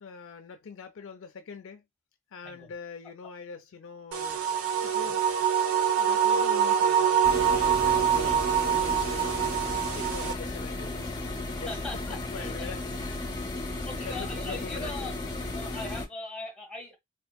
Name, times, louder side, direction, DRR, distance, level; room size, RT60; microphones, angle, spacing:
voice 1, 0.0-1.8 2.3-4.4 4.8-5.2 6.0-9.5 9.9-11.8 12.3-13.3 14.0-15.1, left 4 dB, 65° left, 0.5 m, -43 dB
sound 1, 4.1-10.3, right 8 dB, 70° right, 0.6 m, -25 dB
voice 2, 4.7-5.1 8.1-8.5 11.6-12.7 13.7-15.2 15.5-17.0, left 2 dB, 5° left, 1.4 m, -41 dB
sound 2, 7.2-16.1, left 2 dB, 20° left, 0.8 m, -35 dB
3.5 x 2.6 x 2.3 m
head